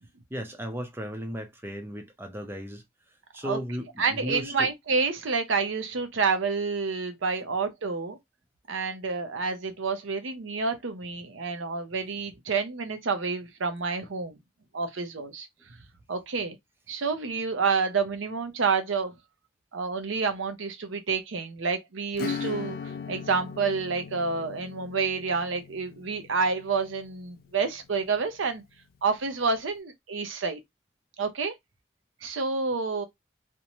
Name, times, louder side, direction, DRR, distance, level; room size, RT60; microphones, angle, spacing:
voice 1, 0.3-2.8 3.3-4.7, equal, 10° right, 0.6 m, -35 dB
voice 2, 4.0-8.2 8.7-14.4 14.7-15.5 16.1-16.5 16.9-19.1 19.7-22.8 23.1-28.6 29.0-30.6 31.2-31.5 32.2-33.0, right 4 dB, 85° right, 0.6 m, -28 dB
Acoustic guitar / Strum, 22.1-28.4, left 5 dB, 50° left, 0.4 m, -39 dB
2.6 x 2.1 x 2.9 m
head